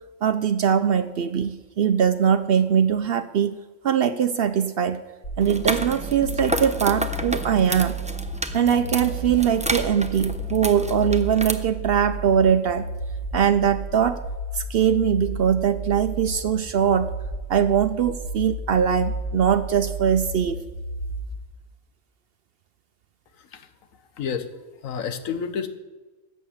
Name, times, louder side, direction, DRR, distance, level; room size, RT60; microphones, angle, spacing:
voice 1, 0.2-3.6 3.8-5.0 5.4-8.0 8.5-12.9 13.3-14.2 14.5-17.1 17.5-20.6, right 8 dB, 60° right, 11 dB, 0.6 m, -21 dB
sound 1, 5.2-21.2, right 1 dB, 70° left, 3.5 m, -32 dB
sound 2, 5.4-11.5, right 1 dB, 10° right, 0.3 m, -31 dB
voice 2, 24.8-25.7, left 7 dB, 85° left, 10 dB, 1.3 m, -29 dB
11.0 x 8.3 x 7.1 m, 1.2 s
omnidirectional pair, 1.4 m